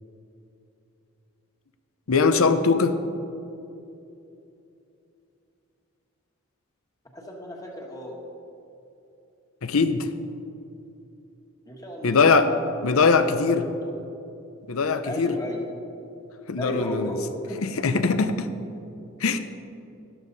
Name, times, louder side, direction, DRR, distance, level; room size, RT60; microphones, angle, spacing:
voice 1, 2.1-3.0 9.6-10.1 12.0-12.5 12.8-13.7 14.7-15.3 16.5-17.2 17.6-18.5 19.2-19.4, left 4 dB, 75° left, 10 dB, 0.7 m, -21 dB
voice 2, 7.1-8.2 11.7-12.3 13.0-13.9 15.0-15.6 16.6-17.6, equal, 15° left, 0 dB, 1.4 m, -34 dB
12.5 x 12.0 x 4.0 m, 2.8 s
head